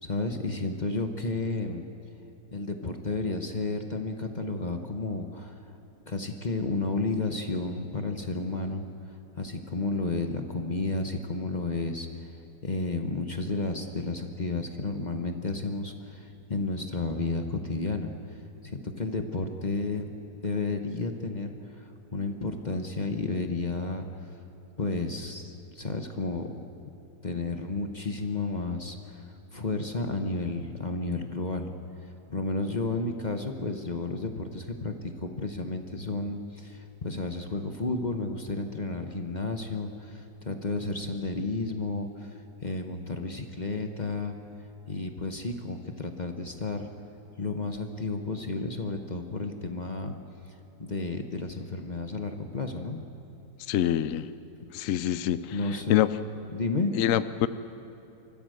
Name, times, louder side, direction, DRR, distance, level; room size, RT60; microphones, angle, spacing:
voice 1, 0.0-1.8 2.5-5.6 6.1-8.8 9.4-12.3 12.6-18.1 18.6-20.1 20.4-24.1 24.8-26.5 27.2-31.7 32.3-34.9 35.2-44.3 44.9-46.9 47.4-50.1 50.8-53.0 55.5-56.1 56.5-56.9, left 3 dB, 30° left, 5 dB, 1.0 m, -32 dB
voice 2, 53.7-54.3 54.7-55.6 55.9-56.1 57.0-57.5, left 11 dB, 65° left, 14 dB, 0.8 m, -25 dB
25.5 x 14.5 x 7.9 m, 2.9 s
omnidirectional pair, 1.9 m